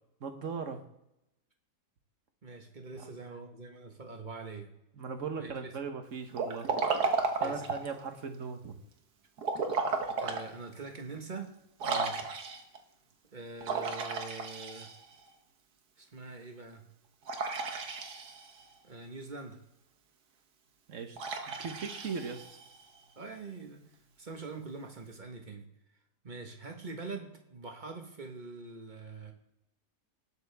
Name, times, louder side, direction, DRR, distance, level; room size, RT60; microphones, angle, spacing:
voice 1, 0.2-0.8 3.0-3.1 5.0-6.7 7.4-8.8 11.8-12.3 20.9-22.4, right 5 dB, 55° right, 7 dB, 1.4 m, -39 dB
voice 2, 2.4-4.7 5.4-5.8 7.4-7.6 10.1-11.5 13.3-14.9 16.0-16.8 18.8-19.6 23.2-23.8 24.2-25.7 26.2-29.3, right 4 dB, 30° right, 3 dB, 1.5 m, -44 dB
Liquid, 6.3-8.0 9.4-10.5 11.0-11.1 11.8-12.8 13.6-15.2 17.3-18.6 21.2-22.8, right 4 dB, 80° right, 1.7 m, -33 dB
19.0 x 6.7 x 3.5 m, 0.85 s
omnidirectional pair, 1.7 m